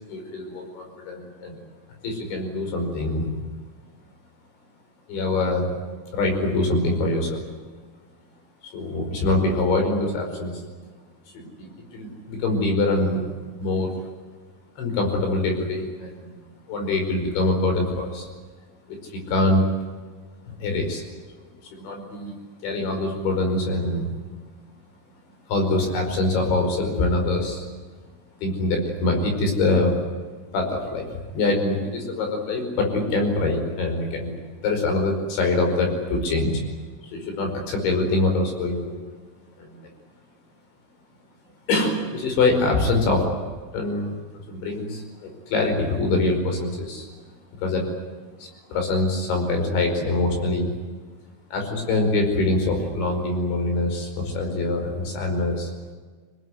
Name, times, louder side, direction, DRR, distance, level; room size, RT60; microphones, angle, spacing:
voice 1, 0.1-1.6 2.0-3.3 5.1-5.7 6.1-7.4 8.6-10.6 11.3-13.3 13.6-14.0 14.8-16.4 16.7-18.3 18.9-19.6 20.6-21.0 21.8-24.1 25.5-27.6 28.4-30.0 30.5-34.3 34.6-36.6 37.0-39.0 39.6-39.9 41.7-43.3 43.7-44.2 44.5-47.1 47.6-47.9 48.4-50.7 51.5-55.7, left 2 dB, 65° left, 4 dB, 7.2 m, -24 dB
25.5 x 20.0 x 9.6 m, 1.4 s
omnidirectional pair, 5.7 m